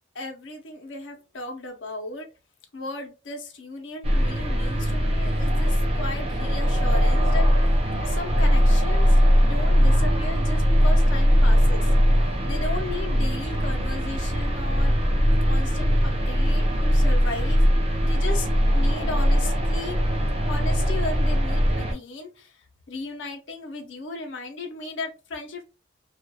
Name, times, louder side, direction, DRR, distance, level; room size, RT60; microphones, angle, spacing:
voice 1, 0.1-2.3 2.7-7.5 8.1-11.9 12.5-14.9 15.4-17.6 18.0-18.5 18.7-20.0 20.5-22.6 22.9-25.7, left 2 dB, 75° left, 3 dB, 0.7 m, -35 dB
sound 1, 4.0-21.9, equal, 30° right, 0.4 m, -21 dB
2.4 x 2.2 x 2.7 m, 0.30 s
head